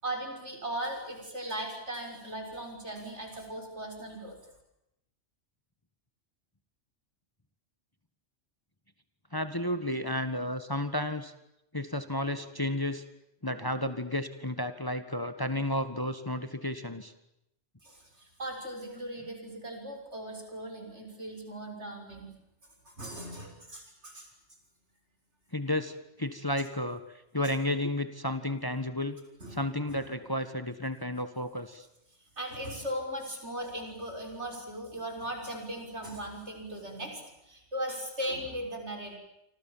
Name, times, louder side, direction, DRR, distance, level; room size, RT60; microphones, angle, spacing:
voice 1, 0.0-4.4 17.8-22.3 22.8-24.3 29.4-29.6 29.9-30.0 32.4-39.2, right 1 dB, 70° right, 3 dB, 6.8 m, -38 dB
voice 2, 9.3-11.3 11.7-13.0 13.4-17.1 25.5-27.0 27.3-29.2 29.5-31.9, left 1 dB, 20° left, 10 dB, 1.6 m, -32 dB
29.0 x 25.5 x 7.4 m, 0.84 s
omnidirectional pair, 1.2 m